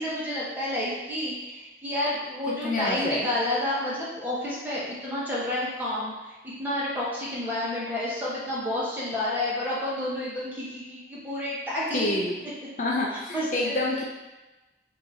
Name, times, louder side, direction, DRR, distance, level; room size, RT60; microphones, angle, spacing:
voice 1, 0.0-12.2 13.3-14.0, left 1 dB, 10° right, -7 dB, 1.1 m, -30 dB
voice 2, 2.6-3.3 11.9-12.4 12.8-14.0, left 2 dB, 45° left, -3 dB, 0.5 m, -27 dB
3.9 x 2.8 x 4.0 m, 1.1 s
head